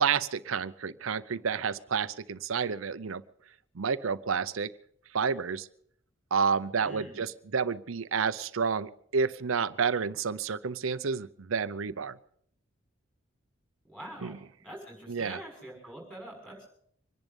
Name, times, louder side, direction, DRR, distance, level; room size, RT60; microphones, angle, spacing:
voice 1, 0.0-3.2 3.7-4.7 5.1-5.7 6.3-12.2 14.2-14.4 15.1-15.4, right 6 dB, 80° right, 15 dB, 0.6 m, -30 dB
voice 2, 6.8-7.2 13.9-14.4 14.6-16.7, right 1 dB, 5° left, -1 dB, 6.4 m, -45 dB
25.0 x 10.5 x 5.3 m, 0.66 s
head